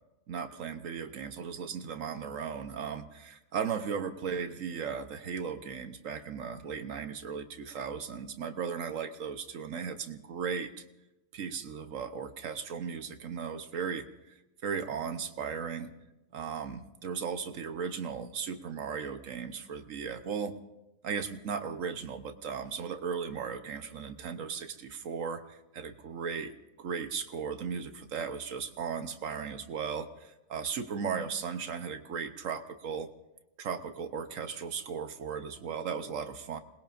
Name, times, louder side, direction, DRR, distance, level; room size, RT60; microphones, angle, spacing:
voice 1, 0.3-10.7 11.3-14.4 14.6-15.9 16.3-20.5 21.0-26.5 26.8-33.1 33.6-36.6, right 6 dB, 70° right, 8 dB, 1.2 m, -36 dB
28.0 x 20.0 x 2.5 m, 0.96 s
omnidirectional pair, 1.4 m